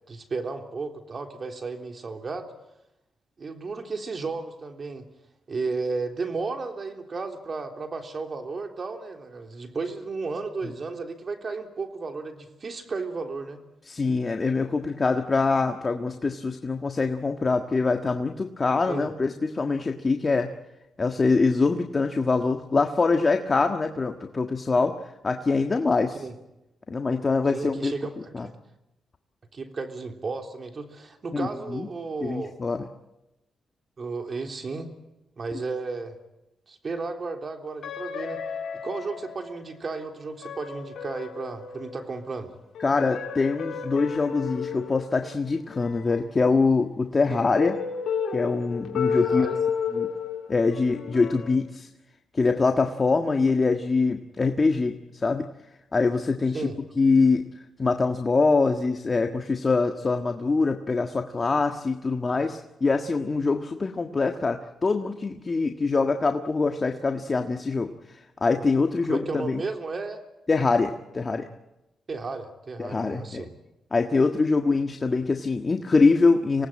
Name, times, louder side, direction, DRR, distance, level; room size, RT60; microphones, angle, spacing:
voice 1, 0.1-2.5 3.4-5.1 5.5-13.6 18.9-19.1 26.2-26.3 27.5-28.5 29.5-32.5 34.0-34.9 35.4-36.2 36.7-38.4 38.8-42.5 47.3-47.4 49.1-49.6 56.5-56.8 69.1-70.2 72.1-73.5, right 4 dB, 45° right, 4 dB, 3.4 m, -33 dB
voice 2, 13.9-20.5 21.0-25.0 25.2-26.2 26.9-27.9 28.3-28.5 31.3-31.9 32.2-32.9 42.8-47.8 48.3-49.6 49.9-50.1 50.5-51.9 52.3-55.5 55.9-56.7 57.0-57.4 57.8-69.6 70.5-71.5 72.8-73.4 73.9-76.7, left 4 dB, 35° left, 5 dB, 1.6 m, -24 dB
sound 1, 37.8-39.9 40.4-42.1 42.7-46.2 47.6-51.6, left 7 dB, 70° left, 3.8 m, -32 dB
25.5 x 18.5 x 8.9 m, 0.94 s
cardioid pair, 70°, 0 cm